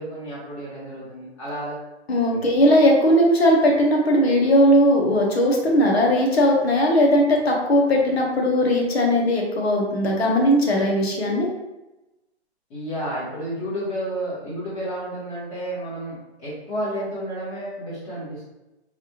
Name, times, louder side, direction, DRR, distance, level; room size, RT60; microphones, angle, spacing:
voice 1, 0.0-1.8 2.3-2.5 12.7-18.4, right 1 dB, 20° left, -9 dB, 1.2 m, -31 dB
voice 2, 2.1-11.5, equal, 65° left, 0 dB, 1.1 m, -18 dB
3.4 x 2.5 x 2.9 m, 1.0 s
hypercardioid pair, 165°, 34 cm